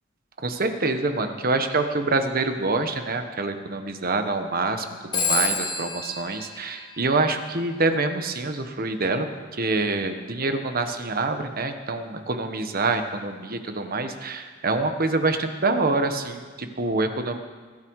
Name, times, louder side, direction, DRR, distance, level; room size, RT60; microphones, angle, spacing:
voice 1, 0.4-4.9 5.1-9.3 9.5-17.4, right 3 dB, 50° right, 7 dB, 1.3 m, -26 dB
Telephone, 5.1-7.6, left 3 dB, 25° left, 1.9 m, -29 dB
21.5 x 13.0 x 4.8 m, 1.5 s
head